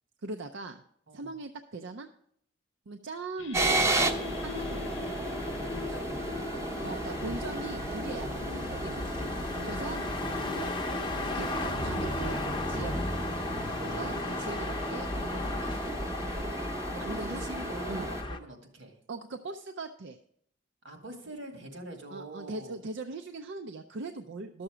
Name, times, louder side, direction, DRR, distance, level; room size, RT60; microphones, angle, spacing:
voice 1, 0.2-0.8 1.1-2.1 2.9-3.8 4.4-5.0 6.8-8.3 8.7-9.1 9.7-10.0 10.5-11.0 11.3-13.1 13.8-15.8 16.9-17.4 17.9-18.1 19.1-20.2 22.1-24.6, right 3 dB, 65° right, 6 dB, 0.5 m, -40 dB
voice 2, 1.1-1.4 5.7-6.3 8.7-9.0 9.6-9.9 16.2-16.5 17.0-19.0 20.8-22.8, right 1 dB, 85° right, 3 dB, 2.0 m, -45 dB
sound 1, 3.4-12.7, left 7 dB, 65° left, 0.6 m, -45 dB
sound 2, 3.5-18.4, left 2 dB, 25° left, 0.7 m, -36 dB
sound 3, 3.5-18.2, right 2 dB, 15° right, 0.7 m, -34 dB
12.0 x 6.9 x 5.0 m, 0.67 s
head